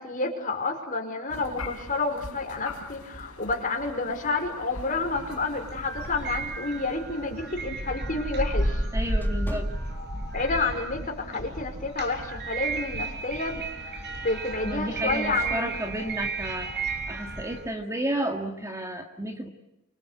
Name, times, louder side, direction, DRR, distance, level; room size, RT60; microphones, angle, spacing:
voice 1, 0.0-8.8 10.3-15.7, left 3 dB, 35° left, 3 dB, 5.1 m, -30 dB
sound 1, 1.3-7.9, left 3 dB, 80° left, 4.5 m, -43 dB
sound 2, 5.1-17.7, right 2 dB, 50° right, 6.0 m, -32 dB
sound 3, 7.7-10.7 11.1-11.3 11.9-12.2, equal, 10° left, 2.1 m, -43 dB
voice 2, 8.9-9.7 14.6-19.5, right 1 dB, 15° right, 4 dB, 1.9 m, -32 dB
28.5 x 25.5 x 8.2 m, 0.90 s
head